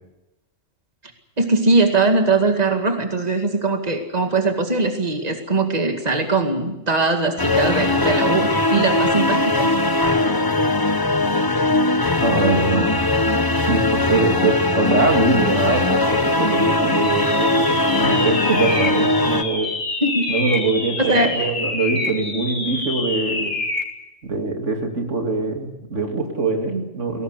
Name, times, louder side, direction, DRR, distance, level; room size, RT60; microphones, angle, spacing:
voice 1, 1.4-9.7 20.0-20.3 21.1-21.5, right 3 dB, 35° right, 4 dB, 2.4 m, -20 dB
sound 1, 7.4-19.4, left 2 dB, 20° left, 0.9 m, -20 dB
voice 2, 12.2-13.0 13.7-19.7 20.3-23.5 24.2-27.2, right 3 dB, 75° right, 3 dB, 2.9 m, -23 dB
sound 2, 17.0-24.0, left 3 dB, 65° left, 2.8 m, -27 dB
22.0 x 18.5 x 8.4 m, 0.93 s
omnidirectional pair, 1.3 m